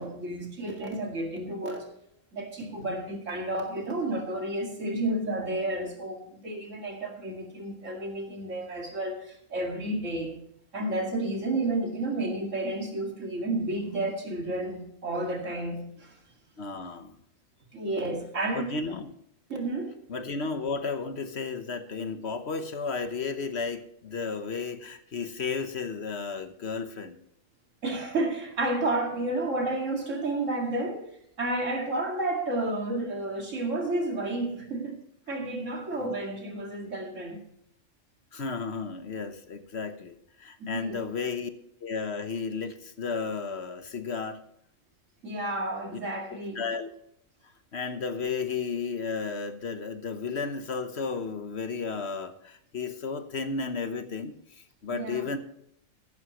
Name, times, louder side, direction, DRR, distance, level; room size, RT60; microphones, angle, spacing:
voice 1, 0.0-1.9 2.3-10.3 10.7-16.2 17.7-18.7 19.5-20.0 27.8-35.0 35.3-37.4 40.6-41.0 45.2-46.6 54.9-55.3, right 2 dB, 70° right, 2.6 m, -31 dB
voice 2, 16.6-17.2 18.5-19.1 20.1-27.2 36.0-36.1 38.3-41.5 41.8-44.4 46.5-46.9 47.7-54.3 54.8-55.4, left 4 dB, 55° left, 1.2 m, -33 dB
14.5 x 12.0 x 3.0 m
omnidirectional pair, 1.3 m